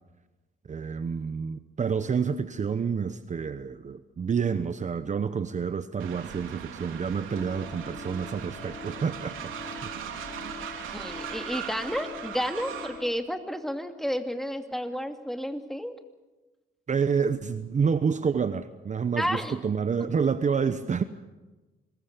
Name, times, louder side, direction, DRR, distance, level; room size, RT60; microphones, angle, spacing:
voice 1, 0.7-9.9 16.9-21.0, right 6 dB, 40° right, 11 dB, 1.0 m, -28 dB
Train, 6.0-13.0, right 8 dB, 90° right, 3.3 m, -39 dB
sound 1, 7.3-13.1, left 5 dB, 30° left, 1.6 m, -44 dB
voice 2, 10.9-16.0 19.2-19.6, equal, ahead, 5 dB, 2.6 m, -31 dB
26.5 x 21.0 x 6.9 m, 1.2 s
cardioid pair, 90°, 20 cm